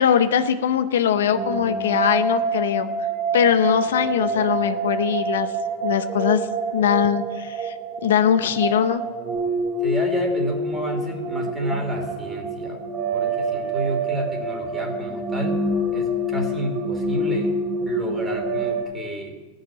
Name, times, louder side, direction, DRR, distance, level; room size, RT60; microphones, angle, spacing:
voice 1, 0.0-2.9 3.3-5.5 5.8-6.4 6.7-7.7 8.0-9.0, left 9 dB, 85° left, 10 dB, 0.8 m, -21 dB
sound 1, 1.3-18.8, right 2 dB, 50° right, 3.5 m, -26 dB
voice 2, 9.8-12.8 13.1-15.6 15.9-17.5 17.9-19.4, right 1 dB, 15° right, 3 dB, 2.8 m, -30 dB
15.0 x 6.6 x 9.0 m, 1.3 s
hypercardioid pair, 120°, 0 cm